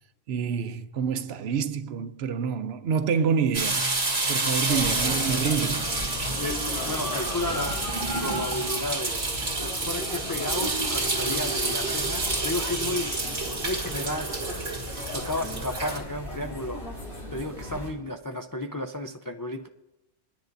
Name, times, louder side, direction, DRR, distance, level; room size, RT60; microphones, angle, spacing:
voice 1, 0.3-3.9 4.3-6.0, right 6 dB, 70° right, 0.9 m, -27 dB
sound 1, 3.5-16.0, right 2 dB, 35° right, 2.1 m, -29 dB
sound 2, 4.7-17.9, left 1 dB, 70° left, 4.3 m, -36 dB
voice 2, 6.4-7.8 8.2-9.3 9.6-13.1 13.6-14.4 15.1-16.8 17.3-19.7, left 1 dB, 30° left, 0.4 m, -33 dB
25.0 x 10.5 x 2.6 m
omnidirectional pair, 1.1 m